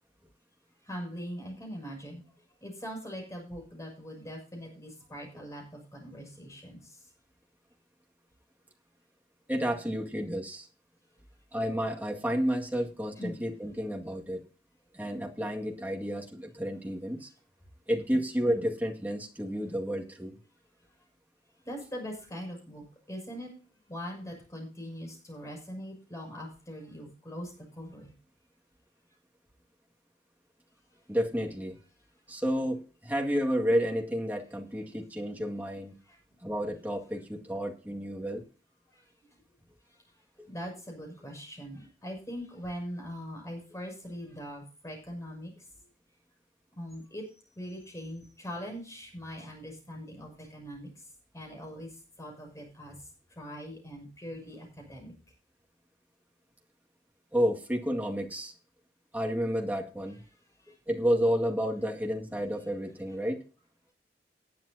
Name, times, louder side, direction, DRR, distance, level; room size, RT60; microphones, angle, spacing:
voice 1, 0.9-2.2 2.6-6.9 13.2-13.4 21.6-23.5 23.9-27.5 27.8-28.1 36.1-36.2 38.9-39.0 40.5-45.5 46.7-47.2 47.6-50.9 51.3-51.9 52.2-52.9 53.4-55.1, equal, 20° left, 1 dB, 6.5 m, -41 dB
voice 2, 9.5-10.7 11.5-14.4 14.9-17.3 17.9-20.3 31.1-31.8 32.3-35.9 36.4-38.4 57.3-58.5 59.1-60.2 60.9-63.4, equal, 10° right, 1 dB, 2.0 m, -31 dB
19.0 x 9.3 x 2.8 m, 0.36 s
head